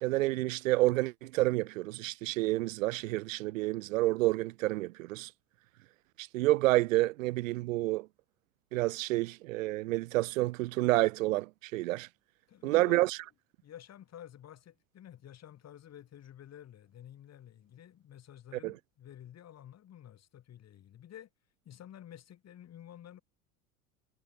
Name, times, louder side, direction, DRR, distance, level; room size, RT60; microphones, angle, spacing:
voice 1, 0.0-5.3 6.2-8.1 8.7-12.1 12.6-13.2 18.6-18.7, right 19 dB, 55° right, 1.0 m, -29 dB
voice 2, 12.5-13.1 13.6-21.3 21.7-23.2, left 10 dB, 35° left, 5.5 m, -51 dB
figure-of-eight pair, 75°, 46 cm